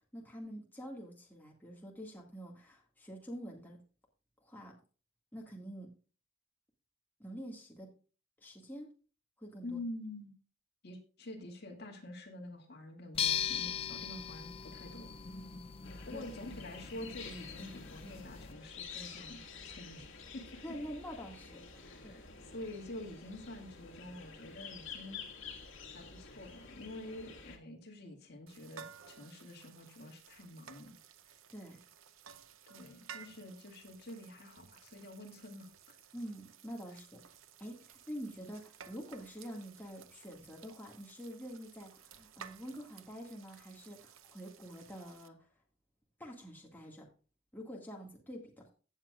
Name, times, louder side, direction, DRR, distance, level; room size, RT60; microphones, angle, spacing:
voice 1, 0.1-3.8 4.4-4.7 5.3-5.9 7.2-7.9 8.4-8.9 9.4-9.8 16.1-16.2 20.6-22.2 31.5-31.8 36.1-37.2 37.6-45.5 46.2-47.1 47.5-48.7, equal, 10° left, -1 dB, 1.9 m, -46 dB
voice 2, 9.6-10.3 10.8-15.1 16.1-20.6 21.8-25.3 25.9-31.0 32.7-36.0, left 1 dB, 55° left, 2 dB, 2.2 m, -47 dB
sound 1, 13.1-18.5, left 8 dB, 30° left, 0.4 m, -39 dB
sound 2, 15.8-27.6, left 5 dB, 75° left, 1.9 m, -50 dB
sound 3, 28.5-45.3, right 7 dB, 80° right, 0.7 m, -56 dB
16.0 x 7.5 x 2.4 m, 0.36 s
head